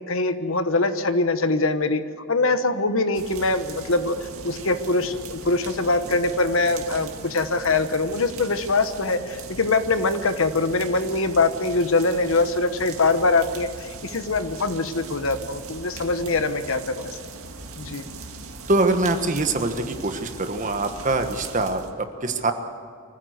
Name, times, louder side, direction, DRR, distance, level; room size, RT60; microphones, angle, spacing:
voice 1, 0.0-17.2 17.8-18.0, left 3 dB, 65° left, 10 dB, 1.2 m, -23 dB
sound 1, 3.1-21.9, right 4 dB, 75° right, 2.0 m, -40 dB
voice 2, 18.7-22.5, right 2 dB, 35° right, 7 dB, 1.4 m, -24 dB
24.5 x 15.0 x 8.0 m, 2.3 s
head